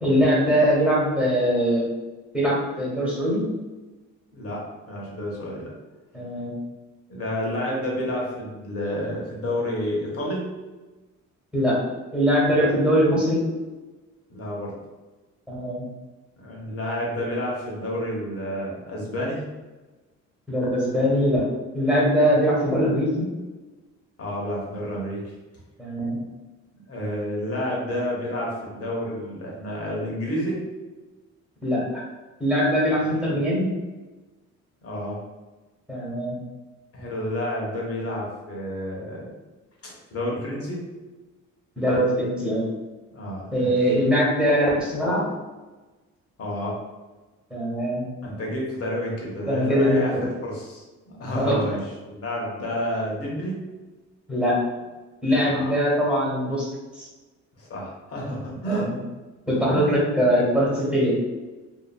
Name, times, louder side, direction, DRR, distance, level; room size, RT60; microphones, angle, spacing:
voice 1, 0.0-1.9 2.3-3.5 6.1-6.5 11.5-11.8 12.1-13.5 15.5-15.8 20.5-21.5 21.7-23.3 25.8-26.2 31.6-32.0 32.4-33.7 35.9-36.3 41.8-42.7 43.5-45.2 47.5-48.0 49.5-50.2 51.3-51.6 54.3-54.6 55.2-56.7 56.9-57.1 58.7-59.0 59.5-61.2, equal, 5° right, -6 dB, 1.1 m, -22 dB
voice 2, 4.9-5.7 7.1-10.4 14.3-14.7 16.4-19.4 24.2-25.3 26.9-30.6 33.3-33.4 34.8-35.2 36.9-39.3 39.8-40.8 43.1-43.8 46.4-46.8 48.2-50.1 50.4-50.8 51.2-51.8 52.1-53.6 55.5-55.7 57.6-58.9 59.7-60.0, equal, 50° left, -3 dB, 1.1 m, -30 dB
2.8 x 2.5 x 2.3 m, 1.2 s
cardioid pair, 90°, 30 cm